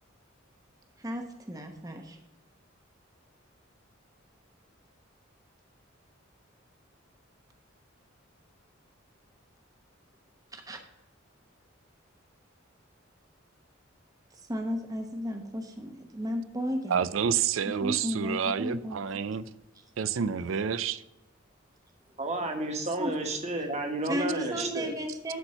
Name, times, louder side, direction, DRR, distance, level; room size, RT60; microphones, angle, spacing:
voice 1, 1.0-2.2 10.5-10.8 14.5-17.0 17.7-19.4 23.0-23.1 24.1-25.4, equal, 20° right, 0.9 m, -34 dB
voice 2, 16.9-19.5 20.0-21.0, right 7 dB, 80° right, 0.5 m, -29 dB
voice 3, 22.2-24.9, right 2 dB, 35° right, 1.6 m, -31 dB
11.5 x 4.5 x 6.5 m
head